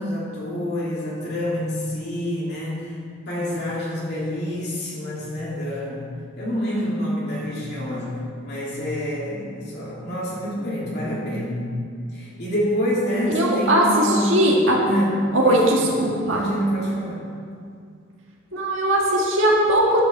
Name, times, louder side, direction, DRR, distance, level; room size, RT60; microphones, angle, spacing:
voice 1, 0.0-3.0 3.3-6.1 6.4-8.1 8.4-11.7 12.1-14.5 14.8-15.9 16.2-17.2, equal, 50° left, -5 dB, 2.8 m, -27 dB
voice 2, 13.3-14.8 15.3-16.4 18.5-20.1, right 1 dB, 65° right, -2 dB, 1.7 m, -19 dB
10.0 x 5.7 x 7.1 m, 2.3 s
head